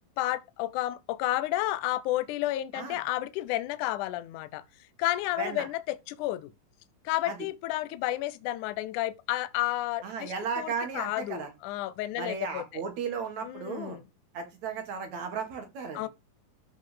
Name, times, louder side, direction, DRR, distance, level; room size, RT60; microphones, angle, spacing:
voice 1, 0.2-4.6 5.0-6.5 7.1-12.7 13.4-14.0 16.0-16.1, left 15 dB, 80° left, 1.8 m, -31 dB
voice 2, 10.0-11.5 12.2-14.0 14.3-16.1, right 6 dB, 55° right, 2.8 m, -35 dB
13.0 x 4.5 x 5.0 m
omnidirectional pair, 4.3 m